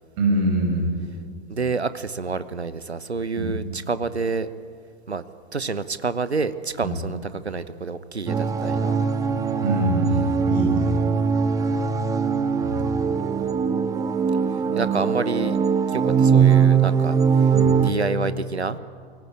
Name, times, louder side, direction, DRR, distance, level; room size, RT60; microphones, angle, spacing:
voice 1, 0.2-0.9 3.4-3.5 6.8-7.0 9.6-11.1 12.6-13.2 17.5-17.8, right 1 dB, 40° right, 1 dB, 7.1 m, -24 dB
voice 2, 1.5-4.5 5.1-5.2 5.5-7.2 7.4-9.0 14.7-15.6 15.9-17.2 17.8-18.8, right 4 dB, 85° right, 14 dB, 1.1 m, -28 dB
sound 1, 8.3-17.9, right 6 dB, 10° right, 0.9 m, -21 dB
22.5 x 18.5 x 8.9 m, 2.1 s
figure-of-eight pair, 105°, 32 cm